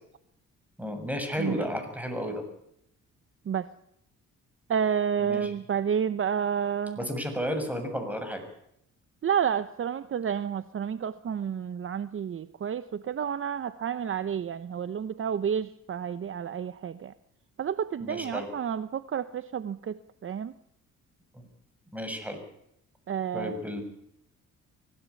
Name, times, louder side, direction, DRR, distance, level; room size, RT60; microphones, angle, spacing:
voice 1, 0.8-2.4 5.2-5.5 7.0-8.4 18.0-18.5 21.3-21.4 21.9-22.4 23.3-23.8, equal, 5° right, 6 dB, 7.2 m, -33 dB
voice 2, 1.4-1.7 3.5-3.7 4.7-7.0 9.2-17.1 17.6-20.5 23.1-23.6, right 8 dB, 45° right, 14 dB, 1.0 m, -30 dB
24.5 x 16.5 x 8.4 m, 0.75 s
cardioid pair, 90°, 30 cm